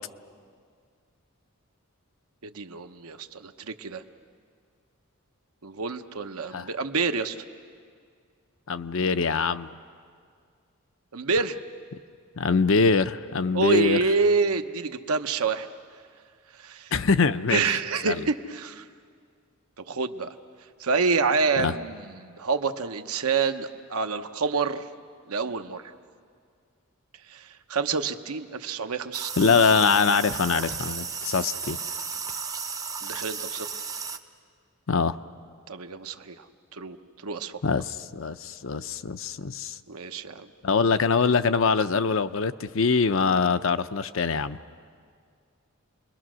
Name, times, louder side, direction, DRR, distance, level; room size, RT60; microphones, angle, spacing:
voice 1, 2.5-4.0 5.6-7.4 11.1-11.6 13.5-15.7 16.5-16.9 17.5-18.8 19.8-20.3 20.8-24.8 25.3-25.9 27.3-29.6 33.0-33.7 35.7-36.5 36.7-37.0 37.2-37.5 39.9-40.5, right 4 dB, 80° right, 8 dB, 0.9 m, -27 dB
voice 2, 8.7-9.8 12.4-14.0 16.9-17.8 18.0-18.2 21.6-21.7 29.4-31.8 34.9-35.2 37.6-39.8 40.6-44.6, left 5 dB, 60° left, 12 dB, 0.6 m, -23 dB
sound 1, 29.1-34.2, right 5 dB, 15° right, 0.6 m, -34 dB
29.0 x 22.0 x 6.2 m, 2.1 s
head